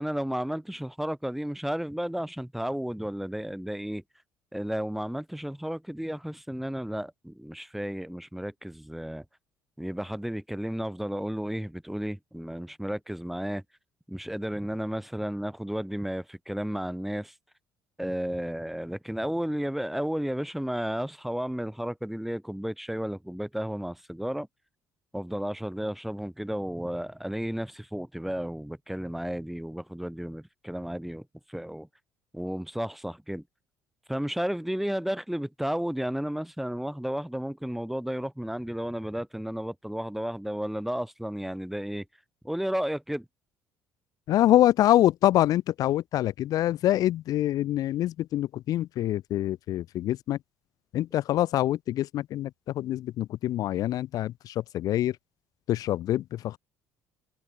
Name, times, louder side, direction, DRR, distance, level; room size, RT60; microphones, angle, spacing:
voice 1, 0.0-4.0 4.5-9.2 9.8-13.6 14.1-17.3 18.0-24.5 25.1-31.9 32.3-33.4 34.1-42.0 42.4-43.2, equal, 5° right, 1.3 m, -33 dB
voice 2, 44.3-50.4 50.9-55.2 55.7-56.6, left 13 dB, 65° left, 0.7 m, -25 dB
supercardioid pair, 85°, 7 cm